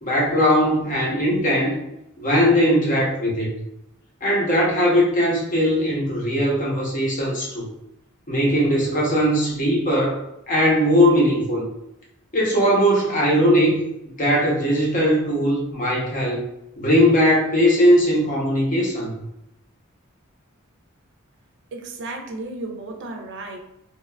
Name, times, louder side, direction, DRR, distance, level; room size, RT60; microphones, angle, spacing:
voice 1, 0.0-1.8 2.2-3.5 4.2-7.7 8.3-10.2 10.5-11.7 12.3-13.8 14.2-16.5 16.8-19.1, equal, 40° left, -3 dB, 0.7 m, -19 dB
voice 2, 21.7-23.6, right 2 dB, 60° right, 2 dB, 0.4 m, -33 dB
2.9 x 2.2 x 2.2 m, 0.83 s
head